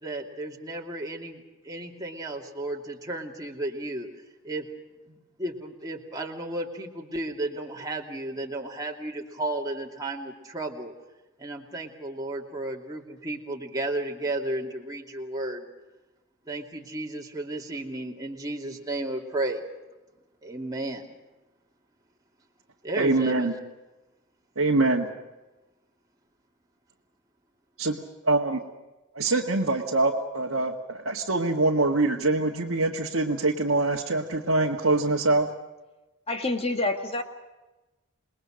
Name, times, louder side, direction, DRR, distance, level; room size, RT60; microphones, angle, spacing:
voice 1, 0.0-4.1 4.4-4.7 5.1-10.9 11.4-15.7 16.5-19.6 20.4-21.0 22.8-23.6, right 2 dB, 15° right, -1 dB, 2.6 m, -33 dB
voice 2, 23.0-23.5 24.6-25.1 27.8-28.0 28.2-28.6 29.2-35.5, right 2 dB, 65° right, -3 dB, 1.8 m, -24 dB
voice 3, 36.3-37.2, left 2 dB, 30° left, 6 dB, 2.0 m, -27 dB
28.0 x 21.0 x 6.5 m, 1.1 s
head